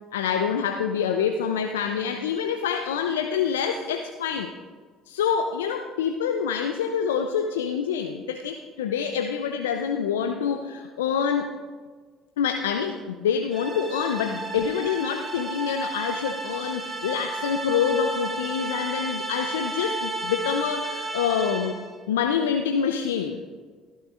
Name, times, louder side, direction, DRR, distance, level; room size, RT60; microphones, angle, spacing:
voice 1, 0.1-4.5 5.1-11.6 12.4-23.4, left 7 dB, 85° left, 6 dB, 0.5 m, -26 dB
sound 1, 13.5-21.9, right 2 dB, 30° right, 1.9 m, -33 dB
15.0 x 12.0 x 2.5 m, 1.5 s
hypercardioid pair, 60°, 0 cm